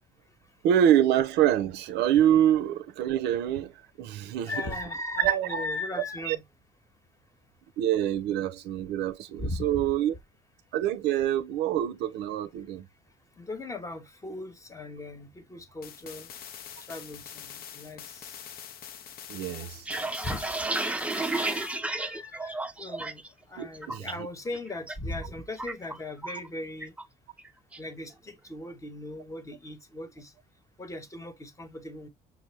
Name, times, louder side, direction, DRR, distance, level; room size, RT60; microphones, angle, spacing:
voice 1, 0.6-3.7 4.0-4.5 5.2-5.6 6.3-6.4 7.8-10.1 10.7-12.9 19.3-20.2 23.6-24.1, right 10 dB, 80° right, 0.6 m, -25 dB
voice 2, 4.4-6.4 9.4-9.8 13.4-16.3 16.9-18.4 20.2-20.5 20.9-26.9 27.8-30.3 30.8-32.1, left 2 dB, 20° left, 1.0 m, -38 dB
sound 1, 15.8-21.8, left 9 dB, 65° left, 0.6 m, -44 dB
sound 2, 19.6-23.3 23.6-24.1 24.5-25.0 25.2-26.5 26.8-27.0 27.4-27.9, right 2 dB, 5° right, 0.4 m, -32 dB
6.0 x 2.1 x 3.0 m
cardioid pair, 110°, 17 cm